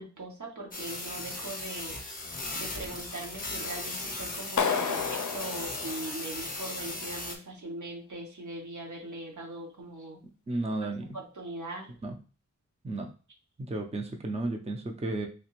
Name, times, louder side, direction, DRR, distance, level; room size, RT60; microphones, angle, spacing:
voice 1, 0.0-2.0 2.5-10.2 10.8-10.9 11.1-11.9, right 2 dB, 75° right, 0 dB, 1.0 m, -40 dB
sound 1, 0.7-7.4, left 2 dB, 30° left, 0.7 m, -37 dB
Clapping, 4.6-6.6, left 6 dB, 75° left, 0.5 m, -31 dB
voice 2, 10.5-11.2 12.0-12.2 12.8-13.1 13.7-15.3, right 2 dB, 20° right, 3 dB, 0.5 m, -33 dB
3.3 x 2.8 x 2.9 m, 0.36 s
wide cardioid pair, 65°, 30 cm